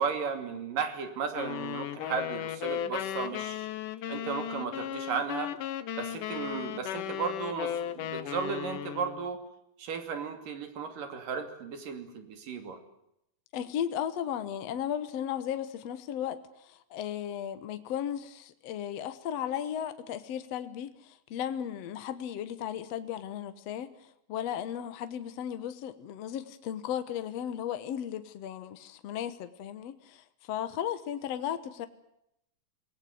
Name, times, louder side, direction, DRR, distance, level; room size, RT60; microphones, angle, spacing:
voice 1, 0.0-3.7 4.1-5.5 6.0-9.4 9.8-12.8, right 6 dB, 85° right, 8 dB, 4.4 m, -35 dB
sound 1, 1.3-9.3, left 11 dB, 75° left, 2.7 m, -36 dB
voice 2, 13.5-31.9, left 10 dB, 60° left, 11 dB, 2.1 m, -35 dB
26.5 x 19.0 x 9.4 m, 0.81 s
omnidirectional pair, 3.7 m